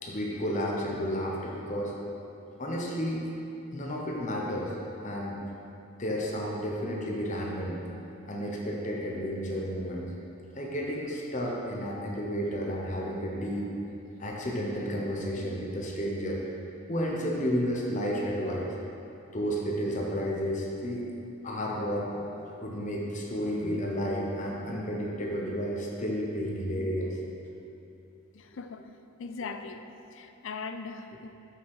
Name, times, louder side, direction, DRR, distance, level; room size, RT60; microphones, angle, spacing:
voice 1, 0.0-1.9 2.6-3.2 3.7-4.7 5.0-5.4 6.0-7.8 8.3-10.1 10.5-13.7 14.2-16.4 16.9-18.7 19.3-21.0 21.4-27.2, equal, 35° left, -3 dB, 0.9 m, -32 dB
voice 2, 28.3-28.9 29.2-29.8 30.1-31.3, left 4 dB, 60° left, 8 dB, 0.4 m, -39 dB
6.6 x 6.1 x 4.8 m, 2.8 s
head